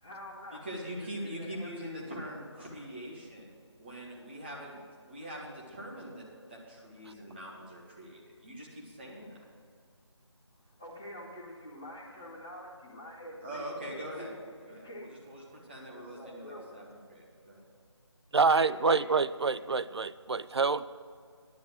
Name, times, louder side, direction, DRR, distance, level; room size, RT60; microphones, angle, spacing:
voice 1, 0.0-0.6 1.0-2.1 10.8-14.3 14.7-15.1 15.9-16.8 18.5-19.0 19.4-19.5, left 1 dB, 5° left, -7 dB, 0.5 m, -46 dB
voice 2, 0.6-3.5 3.8-9.5 13.4-14.3 14.6-17.6, equal, 20° right, -3 dB, 1.7 m, -43 dB
voice 3, 18.3-20.8, right 4 dB, 60° right, 15 dB, 0.4 m, -26 dB
10.5 x 6.9 x 7.7 m, 2.2 s
figure-of-eight pair, 165°, 15 cm